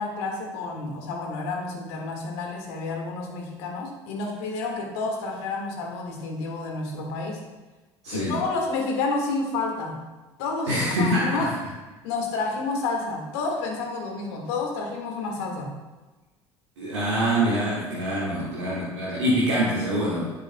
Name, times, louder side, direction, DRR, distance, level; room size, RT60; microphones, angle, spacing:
voice 1, 0.0-7.4 8.1-10.0 10.4-11.5 12.0-15.7 18.3-19.1, left 3 dB, 65° left, 1 dB, 1.8 m, -30 dB
voice 2, 8.0-8.4 10.7-11.5 16.8-20.3, equal, 75° right, -7 dB, 1.7 m, -25 dB
10.0 x 8.6 x 2.2 m, 1.2 s
figure-of-eight pair, 65°, 15 cm